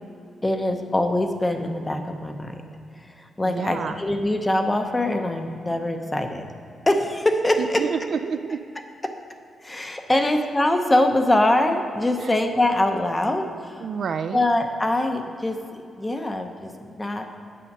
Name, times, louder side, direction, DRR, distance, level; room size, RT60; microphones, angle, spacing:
voice 1, 0.4-2.6 3.4-6.5 6.9-7.9 9.0-9.2 9.6-13.8 14.3-17.4, left 1 dB, 15° left, 5 dB, 0.7 m, -23 dB
voice 2, 3.4-4.0 7.6-8.6 10.1-10.3 12.2-12.3 13.8-14.4, right 6 dB, 60° right, 9 dB, 0.4 m, -29 dB
8.5 x 7.6 x 5.4 m, 2.6 s
wide cardioid pair, 135°, 0 cm